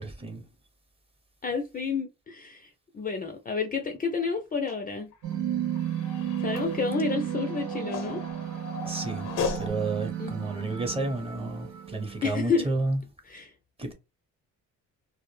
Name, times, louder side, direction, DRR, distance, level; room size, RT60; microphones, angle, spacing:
voice 1, 1.4-5.1 6.4-8.2 10.2-10.5 12.2-12.7 13.3-13.5, left 5 dB, 30° left, 0.4 m, -30 dB
sound 1, 4.7-9.7, left 6 dB, 85° left, 0.7 m, -37 dB
sound 2, 5.2-12.4, right 10 dB, 70° right, 0.5 m, -33 dB
voice 2, 8.8-13.0 13.8-13.9, right 2 dB, 20° right, 0.8 m, -31 dB
2.1 x 2.0 x 3.1 m
cardioid pair, 90°, 30 cm